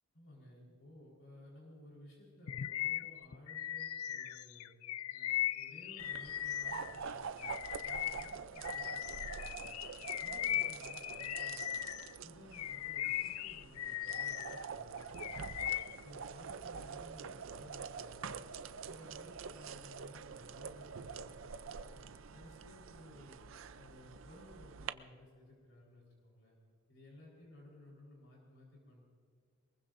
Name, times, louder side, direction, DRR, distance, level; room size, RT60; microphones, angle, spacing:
voice 1, 0.1-4.7 5.1-9.7 10.2-11.6 12.2-15.6 16.0-18.4 18.8-21.5 21.8-22.0 22.3-23.4 23.7-26.6 26.9-29.0, left 1 dB, 60° left, -3 dB, 4.4 m, -57 dB
Bird vocalization bird call bird song, 2.5-7.0 7.4-12.1 12.5-14.6 15.0-16.0, left 12 dB, 85° left, 0.4 m, -39 dB
sound 1, 6.0-24.9, right 6 dB, 65° right, 0.6 m, -46 dB
23.0 x 21.5 x 2.7 m, 2.1 s
head